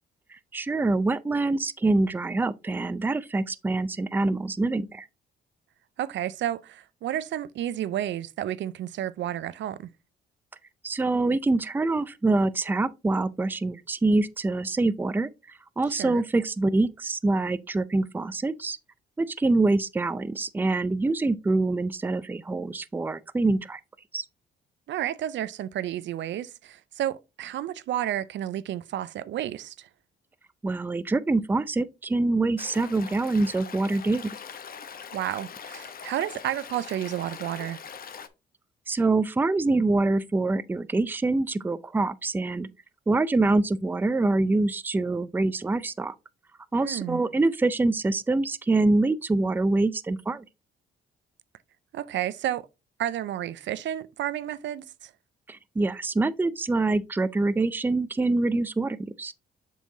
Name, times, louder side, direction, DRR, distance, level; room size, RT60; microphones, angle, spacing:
voice 1, 0.3-5.1 10.8-18.8 19.2-23.8 24.1-24.2 30.6-34.3 38.9-42.7 43.1-46.1 46.7-50.4 55.5-59.3, right 2 dB, 10° right, 0.4 m, -25 dB
voice 2, 6.0-9.9 16.0-16.2 24.9-29.9 35.1-37.8 46.8-47.2 51.9-52.7 53.0-55.1, right 12 dB, 65° right, 0.5 m, -31 dB
Stream, 32.6-38.3, left 7 dB, 50° left, 0.8 m, -42 dB
7.3 x 5.5 x 2.7 m
cardioid pair, 90°, 20 cm